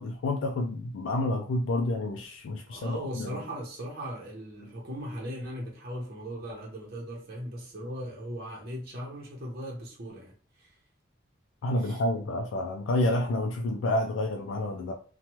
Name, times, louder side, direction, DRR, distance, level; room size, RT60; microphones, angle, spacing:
voice 1, 0.0-3.4 11.6-14.9, left 1 dB, 90° left, 0.4 m, -29 dB
voice 2, 2.7-10.3 10.6-10.7 11.8-12.0, equal, 55° right, 0.8 m, -38 dB
2.9 x 2.2 x 2.9 m
head